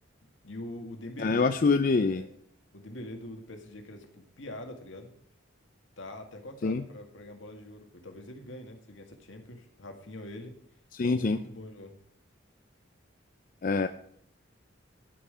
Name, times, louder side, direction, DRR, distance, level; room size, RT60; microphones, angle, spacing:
voice 1, 0.4-1.6 2.1-2.3 2.7-5.1 6.0-10.5 11.0-12.0, left 1 dB, 70° left, 4 dB, 1.9 m, -43 dB
voice 2, 1.2-2.2 6.6-6.8 10.9-11.4 13.6-13.9, left 4 dB, 45° left, 10 dB, 0.4 m, -25 dB
12.5 x 5.7 x 6.8 m, 0.65 s
head